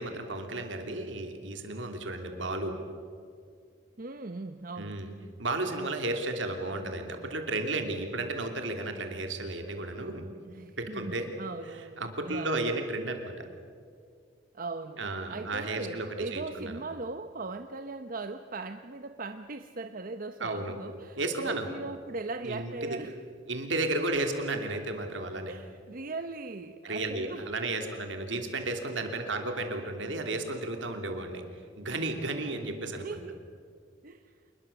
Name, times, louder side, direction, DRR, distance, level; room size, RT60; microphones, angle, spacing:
voice 1, 0.0-2.7 4.8-5.1 5.4-10.3 10.8-11.3 12.0-13.4 15.0-16.8 20.4-20.7 21.2-21.7 22.4-23.0 23.5-25.5 26.8-31.4 31.8-33.2, right 2 dB, 80° right, 5 dB, 3.0 m, -33 dB
voice 2, 4.0-5.0 10.4-12.8 14.5-15.0 15.3-23.2 25.5-27.7 29.0-29.2 32.9-33.4 34.0-34.3, right 3 dB, 50° right, 8 dB, 0.8 m, -39 dB
27.5 x 21.0 x 7.1 m, 2.2 s
head